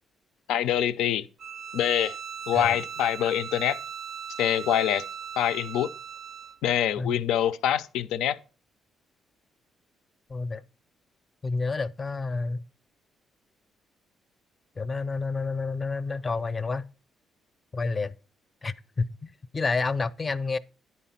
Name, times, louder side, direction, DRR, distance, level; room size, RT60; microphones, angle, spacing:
voice 1, 0.5-1.3 1.7-2.2 2.5-3.8 4.4-5.0 5.4-5.9 6.6-8.4, left 10 dB, 90° left, 0.5 m, -25 dB
Bowed string instrument, 1.4-6.6, right 7 dB, 60° right, 0.4 m, -39 dB
voice 2, 10.3-10.6 11.4-12.7 14.8-16.9 17.7-18.1 18.6-20.6, left 3 dB, 30° left, 0.5 m, -29 dB
9.9 x 4.2 x 5.7 m
cardioid pair, 90°, 0 cm